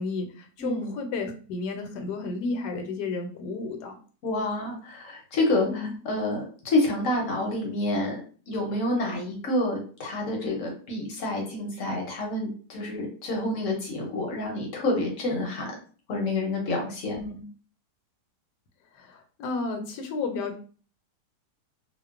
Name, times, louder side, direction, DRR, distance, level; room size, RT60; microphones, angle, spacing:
voice 1, 0.0-4.0 5.6-5.9 17.1-17.4 18.9-20.6, left 3 dB, 75° left, 5 dB, 1.1 m, -32 dB
voice 2, 0.6-0.9 4.2-8.2 8.5-15.7 16.1-17.2, left 1 dB, 60° left, 0 dB, 0.9 m, -28 dB
2.9 x 2.0 x 2.3 m, 0.40 s
omnidirectional pair, 1.9 m